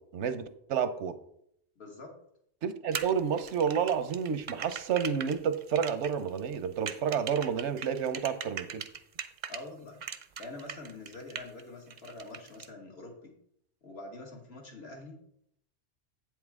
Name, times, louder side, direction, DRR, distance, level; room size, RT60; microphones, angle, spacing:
voice 1, 0.1-1.2 2.6-8.8, right 7 dB, 90° right, 11 dB, 1.0 m, -30 dB
voice 2, 1.8-2.1 9.5-10.0 10.4-13.3 13.8-15.2, left 2 dB, 65° left, 0 dB, 1.9 m, -45 dB
sound 1, 2.9-9.6 10.0-11.6 11.9-12.7, right 7 dB, 50° right, 0.6 m, -40 dB
8.4 x 7.2 x 3.6 m, 0.72 s
omnidirectional pair, 1.2 m